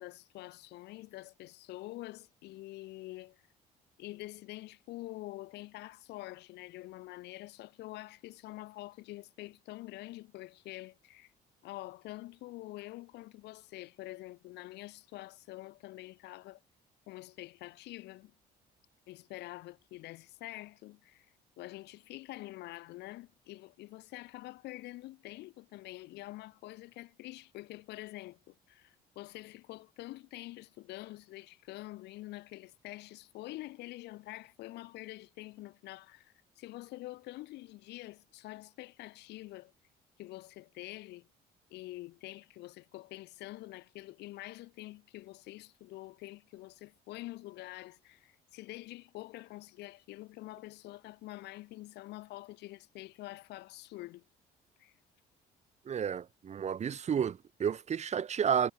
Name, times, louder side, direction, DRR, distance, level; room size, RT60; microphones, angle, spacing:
voice 1, 0.0-3.4 4.0-11.3 11.6-16.6 17.1-18.3 19.1-21.3 21.6-39.7 40.2-41.3 41.7-54.2 54.8-54.9, left 18 dB, 85° left, 5.2 m, -46 dB
voice 2, 55.9-58.7, right 8 dB, 40° right, 2.1 m, -31 dB
cardioid pair, 110°, 17 cm